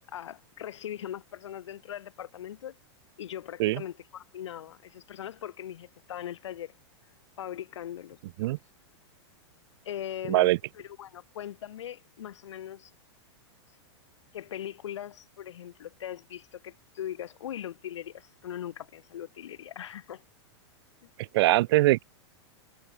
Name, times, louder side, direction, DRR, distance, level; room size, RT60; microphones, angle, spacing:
voice 1, 0.1-2.8 3.2-6.7 7.4-8.2 9.8-12.9 14.3-20.2, left 11 dB, 85° left, 6.6 m, -40 dB
voice 2, 10.3-10.6 21.3-22.0, right 18 dB, 60° right, 0.5 m, -22 dB
supercardioid pair, 140°, 15 cm